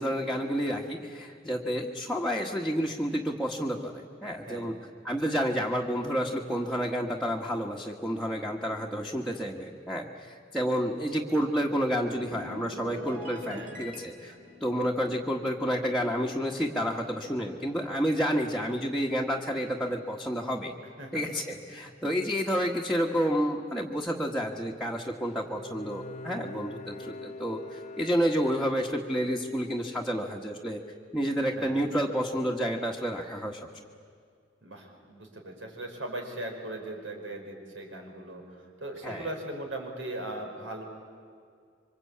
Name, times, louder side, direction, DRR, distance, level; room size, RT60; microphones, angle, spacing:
voice 1, 0.0-4.7 5.0-14.3 14.6-20.7 21.1-30.8 31.1-33.6 39.0-39.3, equal, ahead, -3 dB, 1.5 m, -30 dB
sound 1, 11.8-16.4 16.7-17.0, equal, 45° right, 3.8 m, -45 dB
voice 2, 13.5-13.8 21.0-21.2 31.5-31.8 34.6-40.8, right 1 dB, 85° right, 2 dB, 5.5 m, -39 dB
Bowed string instrument, 25.1-29.5, left 2 dB, 40° left, 1.1 m, -44 dB
27.0 x 24.5 x 8.7 m, 2.2 s
head